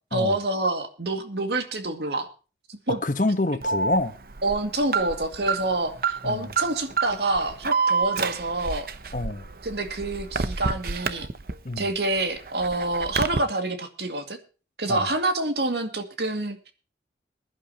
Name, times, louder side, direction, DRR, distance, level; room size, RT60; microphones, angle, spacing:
voice 1, 0.1-2.3 2.7-3.0 4.4-8.9 9.6-11.3 11.8-14.4 14.8-16.7, right 2 dB, 70° right, 2.2 m, -27 dB
voice 2, 2.9-4.1 6.2-6.4 9.1-9.4 11.6-11.8 14.9-15.1, left 2 dB, 45° left, 1.1 m, -27 dB
Alarm, 3.6-11.8 12.2-13.4, right 4 dB, 55° right, 0.8 m, -28 dB
22.0 x 11.0 x 2.9 m
head